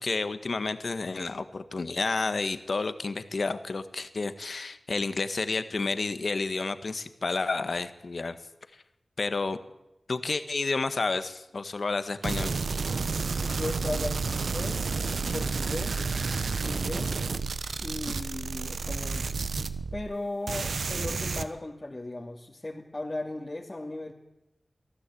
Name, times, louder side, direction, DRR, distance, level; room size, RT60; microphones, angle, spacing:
voice 1, 0.0-8.4 9.2-9.6 10.1-12.6, left 3 dB, 65° left, 10 dB, 1.5 m, -30 dB
sound 1, 12.2-20.2 20.5-21.4, right 4 dB, 80° right, 1.0 m, -30 dB
voice 2, 13.4-14.9 15.3-16.1 16.6-17.2 17.8-19.3 19.9-24.1, left 2 dB, 35° left, -2 dB, 2.4 m, -36 dB
23.5 x 14.5 x 8.6 m, 0.93 s
cardioid pair, 45°, 0 cm